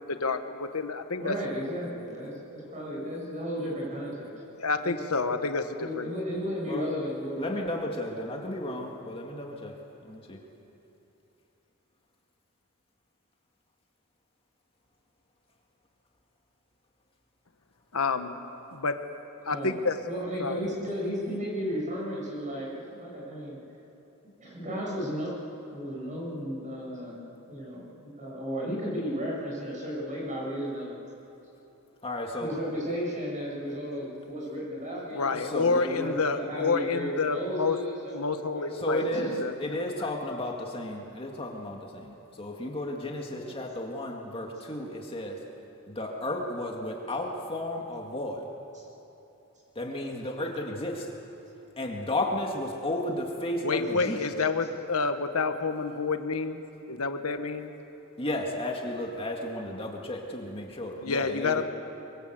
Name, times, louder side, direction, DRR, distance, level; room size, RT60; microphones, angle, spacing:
voice 1, 0.1-1.3 4.6-6.1 17.9-18.4 18.7-19.0 19.4-20.0 20.4-20.6 35.1-37.8 38.1-39.8 53.6-56.6 56.9-57.7 61.0-61.6, left 4 dB, 75° left, 8 dB, 1.3 m, -29 dB
voice 2, 1.2-4.3 4.6-4.9 5.7-7.7 19.5-19.8 20.0-23.6 24.4-27.2 27.5-30.9 32.4-39.3 43.3-43.5 48.7-48.8, equal, 35° right, -3 dB, 7.5 m, -34 dB
voice 3, 7.4-9.7 10.0-10.4 32.0-32.6 35.4-36.2 38.7-39.3 39.6-45.4 45.9-48.5 49.8-51.1 51.8-54.2 58.2-61.6, left 1 dB, 25° left, 0 dB, 2.1 m, -33 dB
24.0 x 23.5 x 8.1 m, 3.0 s
head